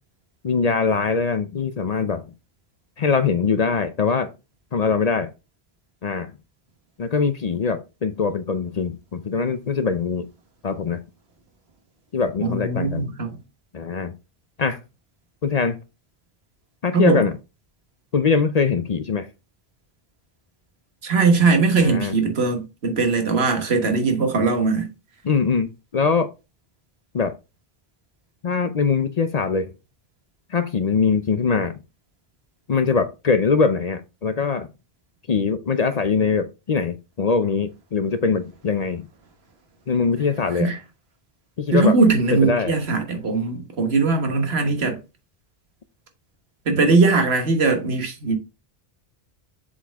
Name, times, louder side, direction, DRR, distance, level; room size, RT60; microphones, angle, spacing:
voice 1, 0.4-2.2 3.0-4.3 4.7-5.3 6.0-6.4 7.0-10.3 10.6-11.0 12.1-13.1 13.7-14.1 14.6-14.8 15.4-15.8 16.8-17.3 18.1-19.3 21.8-22.2 25.2-26.3 27.1-27.3 28.4-29.7 30.5-31.7 32.7-34.7 35.3-39.1 39.9-40.7 41.6-42.0 42.3-42.7, left 5 dB, 45° left, 0.6 m, -22 dB
voice 2, 12.4-13.4 16.9-17.2 21.0-24.9 40.5-40.8 41.7-45.0 46.7-48.4, right 4 dB, 80° right, 1.5 m, -20 dB
7.2 x 4.3 x 3.5 m
omnidirectional pair, 1.0 m